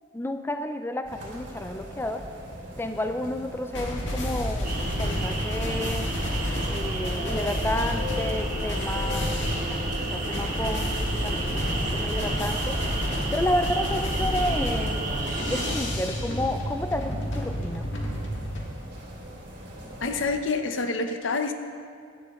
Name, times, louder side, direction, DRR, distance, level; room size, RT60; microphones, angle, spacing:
voice 1, 0.1-2.2 2.8-6.1 6.7-9.3 9.7-10.9 11.2-11.6 11.9-12.8 13.3-15.0 15.4-17.9, left 1 dB, 10° left, 7 dB, 0.4 m, -31 dB
sound 1, 1.0-20.4, equal, 60° right, 2.9 m, -43 dB
sound 2, 3.7-18.6, equal, 70° left, 1.7 m, -31 dB
sound 3, 4.6-15.8, right 1 dB, 45° right, 1.6 m, -31 dB
voice 2, 20.0-21.5, left 3 dB, 90° left, 6 dB, 0.9 m, -27 dB
16.5 x 11.5 x 3.1 m, 2.3 s
head